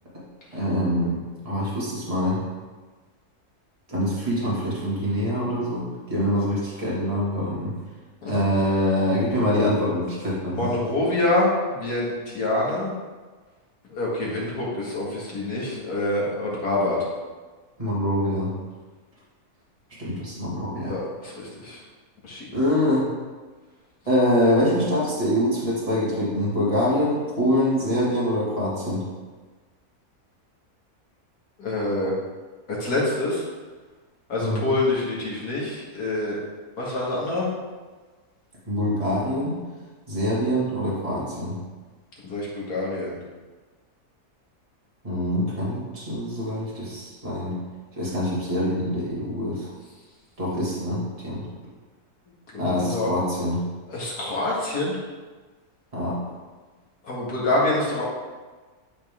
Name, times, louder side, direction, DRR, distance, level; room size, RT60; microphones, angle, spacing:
voice 1, 0.5-2.4 3.9-7.7 8.3-10.7 17.8-18.5 20.0-20.9 22.5-23.1 24.1-29.0 34.4-34.8 38.7-39.6 40.1-41.6 45.0-47.5 48.0-49.7 50.4-51.5 52.6-53.6 55.9-56.2, equal, 20° right, -7 dB, 2.3 m, -24 dB
voice 2, 10.5-12.9 13.9-17.0 20.9-21.8 22.2-22.5 31.6-32.1 32.8-33.4 34.3-36.4 36.8-37.5 42.2-43.1 52.5-53.1 53.9-55.0 57.0-58.0, left 2 dB, 80° left, -5 dB, 2.5 m, -26 dB
11.5 x 4.3 x 3.7 m, 1.3 s
omnidirectional pair, 1.6 m